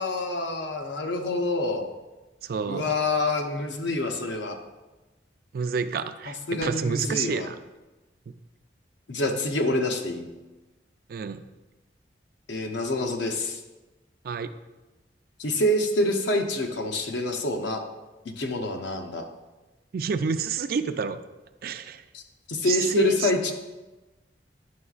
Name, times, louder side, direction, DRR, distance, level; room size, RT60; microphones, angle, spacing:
voice 1, 0.0-1.9 2.7-4.6 6.3-7.5 9.1-10.3 12.5-13.6 15.4-17.8 18.2-19.2 22.1-22.2 22.5-23.5, left 2 dB, 80° left, 4 dB, 0.7 m, -27 dB
voice 2, 2.4-2.9 5.5-7.6 11.1-11.4 14.2-14.5 19.9-21.2 21.6-22.0 22.6-23.3, right 5 dB, 55° right, 11 dB, 0.3 m, -28 dB
9.4 x 6.1 x 2.4 m, 1.1 s
head